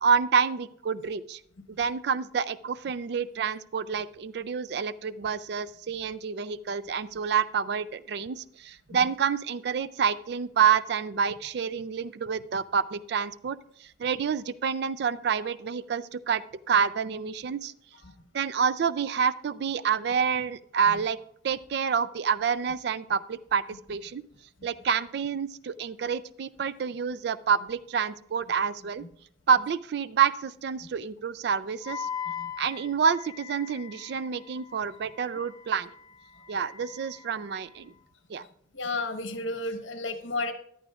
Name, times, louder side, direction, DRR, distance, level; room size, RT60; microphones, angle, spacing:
voice 1, 0.0-1.4 1.8-13.6 14.0-16.4 16.7-17.7 18.3-21.2 21.4-23.6 23.9-24.2 24.6-29.0 29.5-32.1 32.6-35.9 36.5-37.9 38.3-38.4, right 6 dB, 55° right, 17 dB, 0.3 m, -28 dB
Wind instrument woodwind instrument, 31.8-38.0, left 7 dB, 20° left, 0.5 m, -41 dB
voice 2, 38.7-40.5, left 2 dB, 85° left, 8 dB, 1.1 m, -33 dB
14.0 x 10.5 x 2.4 m, 0.70 s
head